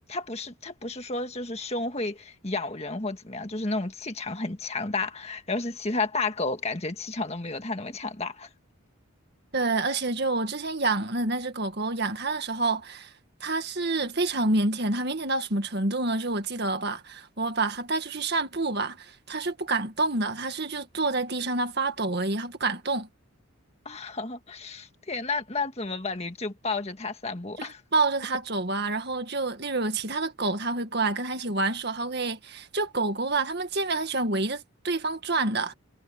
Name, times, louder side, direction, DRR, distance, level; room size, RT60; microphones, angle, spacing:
voice 1, 0.1-8.5 23.9-27.8, left 3 dB, 30° left, 1.7 m, -32 dB
voice 2, 9.5-13.1 13.4-23.1 27.6-35.7, right 3 dB, 50° right, 2.0 m, -28 dB
head